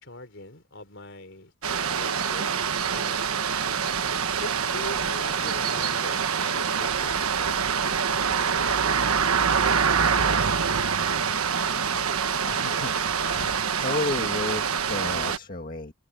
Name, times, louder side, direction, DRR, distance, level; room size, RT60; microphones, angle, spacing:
voice 1, 0.0-2.5 2.8-3.2 4.4-9.0, left 2 dB, 55° left, 3.8 m, -43 dB
sound 1, 1.6-15.4, right 6 dB, 80° right, 1.3 m, -25 dB
voice 2, 11.8-15.9, left 2 dB, 40° left, 2.0 m, -33 dB
open air
head